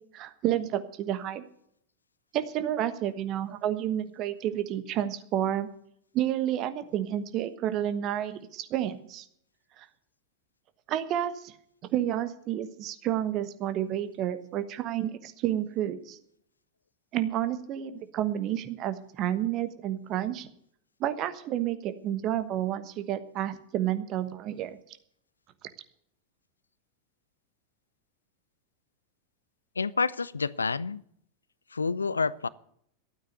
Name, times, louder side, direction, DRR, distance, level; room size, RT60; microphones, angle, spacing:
voice 1, 0.1-1.4 2.3-5.7 6.1-9.2 9.8-9.9 10.9-11.5 11.9-16.2 17.1-20.5 21.0-24.8, right 11 dB, 35° right, 1.3 m, -30 dB
voice 2, 29.8-31.0 31.7-32.5, left 4 dB, 75° left, 0.4 m, -28 dB
12.5 x 9.1 x 7.9 m
figure-of-eight pair, 90°, 0 cm